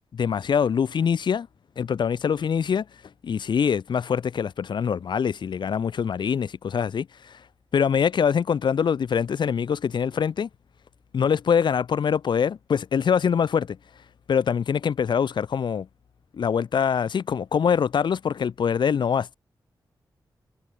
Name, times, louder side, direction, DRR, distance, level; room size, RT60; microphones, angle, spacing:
voice 1, 0.2-1.5 1.8-2.9 3.2-7.4 7.7-10.5 11.1-13.8 14.3-15.9 16.3-19.2, left 7 dB, 80° left, 7.2 m, -24 dB
wide cardioid pair, 170°, 8 cm